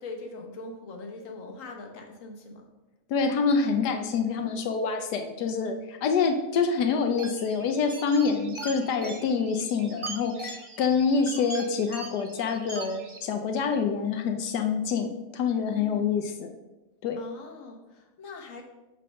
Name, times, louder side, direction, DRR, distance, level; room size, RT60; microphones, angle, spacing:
voice 1, 0.0-2.7 10.2-10.4 15.7-16.2 17.2-18.6, left 3 dB, 55° left, 2 dB, 1.4 m, -42 dB
voice 2, 3.1-16.5 17.0-17.2, left 5 dB, 85° left, 5 dB, 1.3 m, -26 dB
sound 1, 7.2-13.2, right 3 dB, 30° right, 0.6 m, -41 dB
6.6 x 4.2 x 6.4 m, 1.1 s
omnidirectional pair, 1.7 m